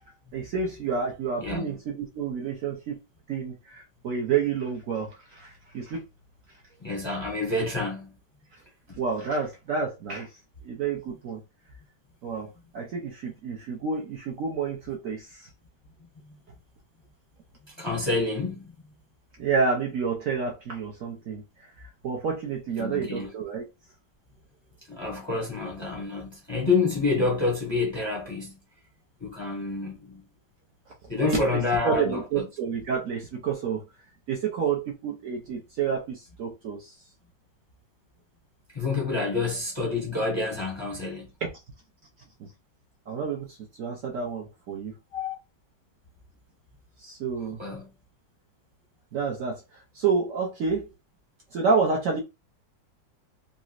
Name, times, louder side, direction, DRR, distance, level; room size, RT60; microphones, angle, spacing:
voice 1, 0.3-3.0 3.3-6.1 9.0-10.3 10.6-11.4 12.2-15.5 19.4-21.4 21.8-23.7 31.2-33.8 34.3-36.9 41.4-41.5 42.4-42.5 43.1-44.9 47.0-47.6 49.1-49.6 49.9-50.9 51.5-52.2, right 5 dB, 65° right, 0.8 m, -29 dB
voice 2, 1.4-1.8 6.8-8.1 16.2-16.4 17.6-18.9 22.8-23.3 24.9-28.6 29.2-30.2 31.1-32.5 38.7-41.3 45.1-45.4 47.6-47.9, left 3 dB, 35° left, 0.4 m, -28 dB
3.8 x 2.1 x 2.4 m
omnidirectional pair, 2.0 m